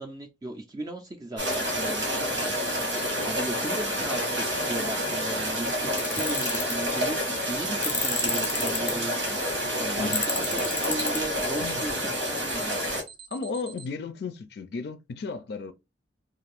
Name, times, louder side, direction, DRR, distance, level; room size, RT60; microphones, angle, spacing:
voice 1, 0.0-2.9 3.2-9.4 9.8-12.8, right 2 dB, 20° right, 0.4 m, -37 dB
Alarm, 1.4-1.5 2.4-2.5 3.4-3.5 4.4-4.5 5.4-5.5 6.4-6.5 7.4-7.5 8.4-8.5 9.4-9.5 10.4-10.5 11.4-13.9, right 7 dB, 60° right, 0.7 m, -45 dB
sound 1, 1.4-13.0, equal, 90° right, 1.3 m, -28 dB
Tools, 6.0-6.7 7.8-8.9 10.1-11.2, left 4 dB, 15° left, 0.6 m, -30 dB
voice 2, 13.3-15.7, left 4 dB, 60° left, 0.4 m, -34 dB
2.5 x 2.5 x 3.3 m
head